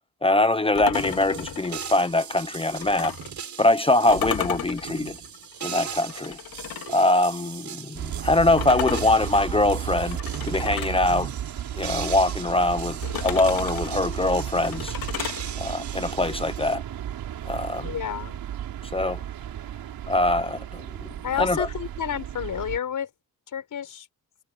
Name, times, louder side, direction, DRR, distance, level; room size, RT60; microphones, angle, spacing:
voice 1, 0.2-3.1 3.6-5.2 5.6-6.4 6.9-10.2 10.4-11.3 11.7-15.0 15.6-16.8 17.4-17.9 18.8-19.2 20.1-21.1 21.4-21.7, left 2 dB, 15° left, 1.1 m, -23 dB
sound 1, 0.7-3.3 4.1-7.1 8.6-11.0 13.0-15.4, left 11 dB, 80° left, 3.6 m, -34 dB
sound 2, 0.9-16.8, right 7 dB, 55° right, 4.0 m, -39 dB
sound 3, 8.0-22.8, right 10 dB, 75° right, 6.0 m, -34 dB
voice 2, 17.8-18.4 21.2-23.1 23.5-24.1, left 9 dB, 60° left, 7.5 m, -30 dB
cardioid pair, 100°, 35 cm